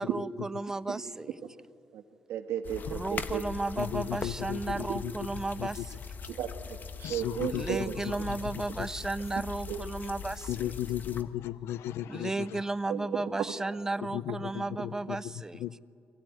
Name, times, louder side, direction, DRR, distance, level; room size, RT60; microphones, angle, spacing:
voice 1, 0.0-1.4 2.9-6.0 7.5-10.7 12.1-15.6, right 2 dB, 15° right, 15 dB, 0.5 m, -34 dB
voice 2, 2.3-3.4 4.7-4.8 6.3-7.8 9.7-9.8 12.9-13.2, right 10 dB, 85° right, 7 dB, 1.4 m, -34 dB
sound 1, 2.6-11.2, left 5 dB, 45° left, 1.1 m, -41 dB
voice 3, 3.8-5.1 5.6-5.8 7.0-8.4 8.8-8.9 10.5-12.4 14.1-15.2 15.6-15.8, left 13 dB, 90° left, 18 dB, 0.5 m, -35 dB
22.0 x 15.5 x 9.3 m, 2.5 s
cardioid pair, 90°, 4 cm